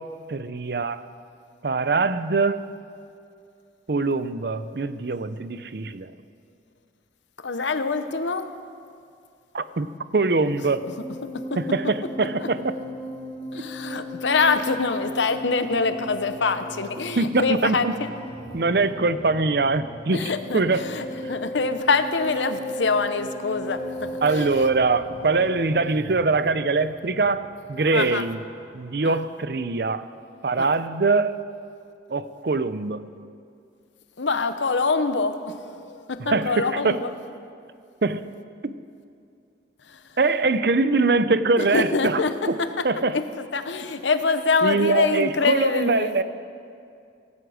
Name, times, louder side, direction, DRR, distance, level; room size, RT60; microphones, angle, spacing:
voice 1, 0.3-1.1 1.6-2.6 3.9-6.1 9.5-10.9 11.6-12.8 17.2-17.9 18.5-20.8 21.2-21.3 24.2-28.4 28.7-30.0 30.4-31.3 32.1-33.1 36.2-37.0 38.0-38.3 38.6-38.7 40.2-42.2 42.5-43.2 44.6-46.2, right 3 dB, 60° right, 13 dB, 0.6 m, -23 dB
voice 2, 7.4-8.5 11.5-11.6 13.5-18.1 20.1-24.7 27.9-28.2 29.0-29.2 30.6-30.7 34.2-37.1 41.6-42.9 43.1-46.2, left 4 dB, 90° left, 10 dB, 0.9 m, -25 dB
sound 1, 10.1-28.6, equal, 25° left, 3.5 m, -37 dB
17.0 x 16.0 x 5.0 m, 2.4 s
head